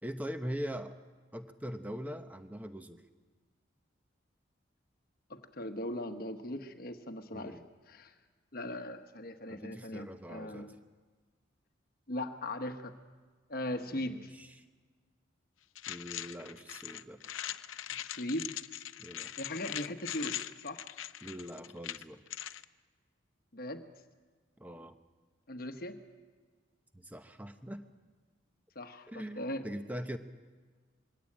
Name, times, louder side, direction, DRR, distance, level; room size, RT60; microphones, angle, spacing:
voice 1, 0.0-0.9 1.3-3.0 7.3-7.7 9.5-10.7 13.9-14.6 15.9-17.2 19.0-19.3 21.2-22.2 24.6-24.9 26.9-27.8 29.1-30.2, equal, 10° right, 8 dB, 0.9 m, -42 dB
voice 2, 5.3-7.6 7.9-8.1 8.5-10.8 12.1-12.9 13.5-14.3 17.9-18.6 19.4-20.8 23.5-23.9 25.5-26.0 28.7-29.1 29.4-29.7, left 1 dB, 45° left, 7 dB, 1.1 m, -39 dB
sound 1, 15.8-22.6, left 12 dB, 80° left, 0.6 m, -41 dB
22.5 x 17.0 x 8.7 m, 1.4 s
head